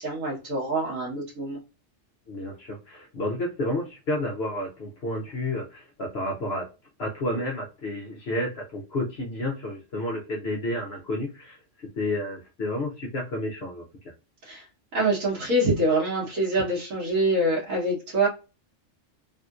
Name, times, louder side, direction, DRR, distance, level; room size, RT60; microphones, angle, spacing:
voice 1, 0.0-1.6 14.4-14.7 14.9-18.3, right 1 dB, 80° right, -5 dB, 1.6 m, -25 dB
voice 2, 2.3-6.7 7.0-11.6 12.0-14.1, left 1 dB, 60° left, -2 dB, 0.9 m, -31 dB
3.5 x 2.7 x 2.4 m, 0.29 s
omnidirectional pair, 1.3 m